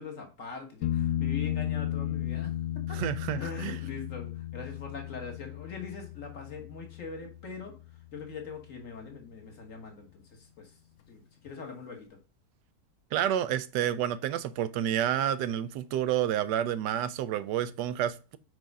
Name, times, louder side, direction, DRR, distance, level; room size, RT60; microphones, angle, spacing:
voice 1, 0.0-2.5 2.9-3.0 3.4-7.7 8.1-10.7 11.1-12.2, left 5 dB, 50° left, 1.7 m, -42 dB
sound 1, 0.8-8.4 11.5-11.6, left 11 dB, 85° left, 1.3 m, -34 dB
voice 2, 2.9-3.8 13.1-18.4, right 10 dB, 85° right, 1.2 m, -29 dB
4.7 x 4.4 x 5.2 m
omnidirectional pair, 1.8 m